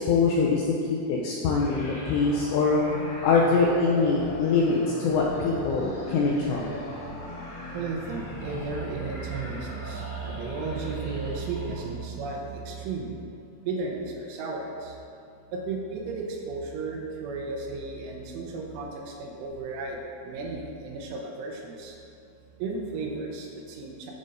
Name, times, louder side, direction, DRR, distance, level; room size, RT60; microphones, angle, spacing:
voice 1, 0.0-2.8 3.2-6.7, left 4 dB, 85° left, -3 dB, 2.6 m, -23 dB
sound 1, 1.5-12.1, left 1 dB, 60° left, 3.1 m, -40 dB
voice 2, 7.7-13.2 13.6-15.0 15.5-22.0 22.6-24.1, right 4 dB, 80° right, 0 dB, 3.1 m, -34 dB
13.0 x 5.3 x 2.6 m, 2.7 s
omnidirectional pair, 5.7 m